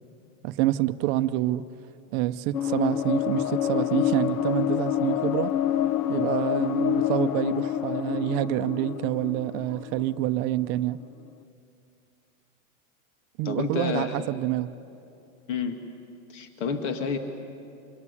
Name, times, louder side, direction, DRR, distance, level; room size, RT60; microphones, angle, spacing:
voice 1, 0.4-1.6 2.1-5.5 6.1-11.0 13.4-14.7, right 15 dB, 40° right, 11 dB, 0.6 m, -27 dB
sound 1, 2.5-10.6, left 11 dB, 75° left, 0.8 m, -27 dB
voice 2, 13.4-14.2 15.5-15.8 16.3-17.2, left 5 dB, 60° left, 5 dB, 2.2 m, -29 dB
26.5 x 22.0 x 9.8 m, 2.7 s
supercardioid pair, 155°, 42 cm